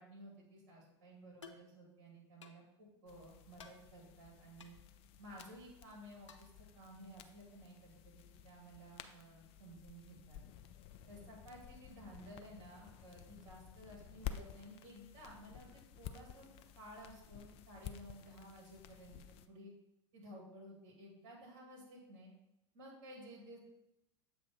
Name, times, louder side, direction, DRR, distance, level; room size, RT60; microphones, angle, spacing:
voice 1, 0.0-4.8 5.2-10.4 11.1-15.7 16.0-16.5 16.8-19.2 19.5-19.7 20.1-22.3 22.7-23.6, equal, 50° right, -2 dB, 2.1 m, -55 dB
sound 1, 1.4-1.7 2.4-2.6 3.6-3.8 4.6-4.7 5.4-5.5 6.3-6.5, left 5 dB, 85° left, 0.6 m, -55 dB
sound 2, 3.1-19.5, left 9 dB, 40° left, 0.4 m, -53 dB
7.5 x 2.6 x 5.5 m, 0.90 s
figure-of-eight pair, 80°, 15 cm